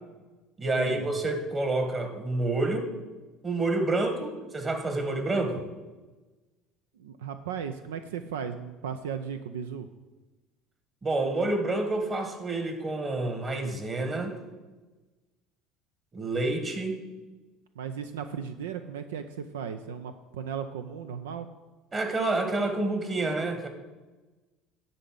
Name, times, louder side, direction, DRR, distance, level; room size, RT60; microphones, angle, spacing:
voice 1, 0.6-2.9 3.4-5.7 11.0-14.4 16.1-17.0 21.9-23.7, right 2 dB, 30° right, 6 dB, 1.8 m, -28 dB
voice 2, 7.0-9.9 17.8-21.5, right 7 dB, 85° right, 9 dB, 0.4 m, -36 dB
10.5 x 4.1 x 7.6 m, 1.2 s
hypercardioid pair, 75°, 0 cm